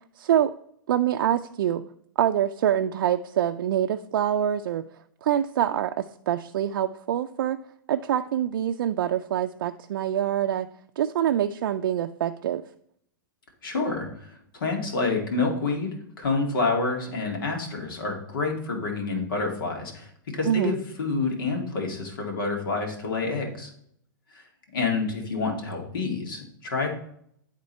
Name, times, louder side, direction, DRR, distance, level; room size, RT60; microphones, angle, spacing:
voice 1, 0.2-0.5 0.9-1.8 2.2-4.8 5.2-7.6 7.9-10.7 11.0-12.6 20.4-20.7, right 10 dB, 75° right, 7 dB, 0.4 m, -25 dB
voice 2, 13.6-23.7 24.3-24.4 24.7-26.9, left 3 dB, 80° left, 1 dB, 2.1 m, -28 dB
10.5 x 3.6 x 4.2 m, 0.68 s
hypercardioid pair, 125°, 11 cm